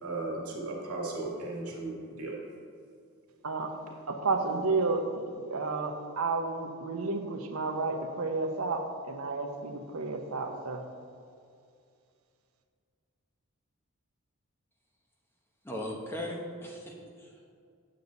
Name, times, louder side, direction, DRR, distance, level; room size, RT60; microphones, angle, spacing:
voice 1, 0.0-2.3, right 2 dB, 90° right, -2 dB, 1.9 m, -36 dB
voice 2, 4.1-10.8, right 3 dB, 75° right, 4 dB, 0.9 m, -31 dB
voice 3, 15.6-17.5, left 1 dB, 10° left, -1 dB, 1.1 m, -38 dB
9.1 x 7.0 x 4.0 m, 2.3 s
head